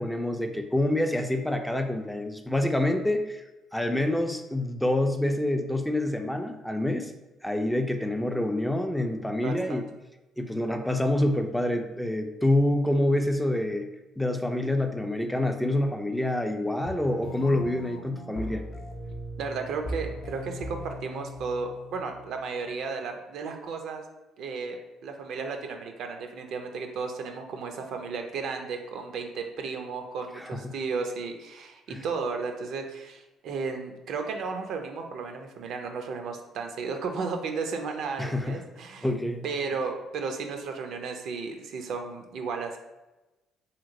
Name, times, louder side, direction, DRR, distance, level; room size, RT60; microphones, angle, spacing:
voice 1, 0.0-3.4 3.7-7.1 7.4-9.9 10.4-13.9 14.2-18.6 30.4-30.8 31.9-32.1 38.2-38.6 39.0-39.4, left 1 dB, 5° left, 6 dB, 0.3 m, -27 dB
voice 2, 9.4-9.8 19.4-24.0 24.4-39.1 39.4-42.8, right 4 dB, 70° right, 4 dB, 0.4 m, -34 dB
sound 1, 16.9-22.9, equal, 65° left, 0.5 m, -40 dB
2.8 x 2.8 x 2.6 m, 1.0 s
supercardioid pair, 75°, 0 cm